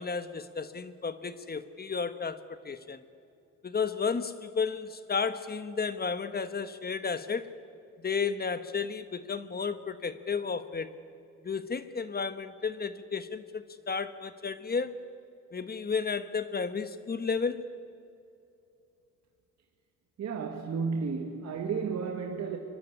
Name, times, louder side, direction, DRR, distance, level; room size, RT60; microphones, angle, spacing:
voice 1, 0.0-3.0 3.6-7.5 8.0-10.9 11.4-15.0 15.5-17.7, left 5 dB, 30° left, 1.3 m, -33 dB
voice 2, 20.2-22.6, right 5 dB, 60° right, 2.3 m, -32 dB
25.0 x 23.0 x 9.9 m
cardioid pair, 90°, 30 cm